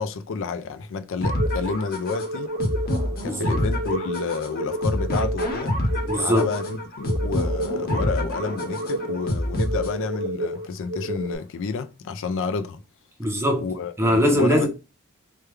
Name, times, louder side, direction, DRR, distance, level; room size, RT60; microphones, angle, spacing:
voice 1, 0.0-2.5 3.2-5.8 6.2-12.8 13.6-14.7, left 5 dB, 65° left, 0.4 m, -30 dB
sound 1, 1.2-10.2, left 1 dB, 45° left, 0.9 m, -27 dB
sound 2, 1.4-11.4, right 1 dB, 65° right, 0.7 m, -31 dB
voice 2, 3.2-3.6 6.1-6.5 13.2-13.6 14.0-14.7, equal, 10° right, 0.7 m, -21 dB
3.2 x 2.2 x 3.2 m
head